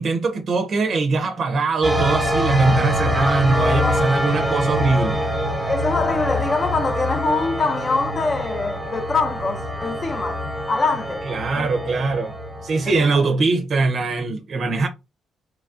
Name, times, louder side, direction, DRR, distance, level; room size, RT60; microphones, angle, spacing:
voice 1, 0.0-5.2 11.3-12.4 12.6-14.9, right 3 dB, 55° right, 0.5 m, -21 dB
sound 1, 1.8-13.0, equal, ahead, 0.9 m, -24 dB
voice 2, 3.7-4.0 5.7-10.4 10.7-11.2 11.5-11.7 13.1-13.2, left 4 dB, 35° left, 0.5 m, -24 dB
3.0 x 2.3 x 2.5 m
cardioid pair, 90°, 0 cm